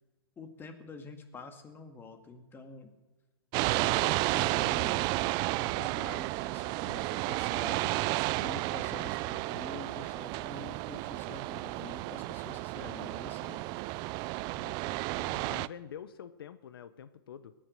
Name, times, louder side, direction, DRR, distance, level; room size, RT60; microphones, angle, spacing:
voice 1, 0.4-2.9 3.7-5.0 5.5-8.0 8.4-13.7, left 4 dB, 15° left, 6 dB, 2.0 m, -47 dB
sound 1, 3.5-15.7, right 20 dB, 35° right, 0.4 m, -32 dB
voice 2, 14.5-17.5, left 8 dB, 75° left, 13 dB, 0.9 m, -47 dB
19.0 x 10.5 x 6.5 m, 1.2 s
hypercardioid pair, 125°, 12 cm